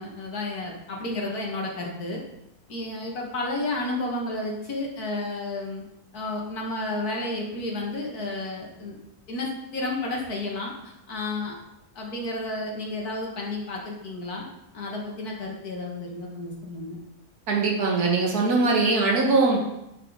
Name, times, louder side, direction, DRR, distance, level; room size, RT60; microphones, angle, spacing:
voice 1, 0.0-2.2 2.7-5.8 6.1-8.9 9.3-11.6 12.0-14.4 14.7-17.0, left 2 dB, 80° left, -1 dB, 2.2 m, -31 dB
voice 2, 17.5-19.6, right 3 dB, 80° right, -1 dB, 2.1 m, -21 dB
10.0 x 6.0 x 3.9 m, 0.85 s
omnidirectional pair, 1.6 m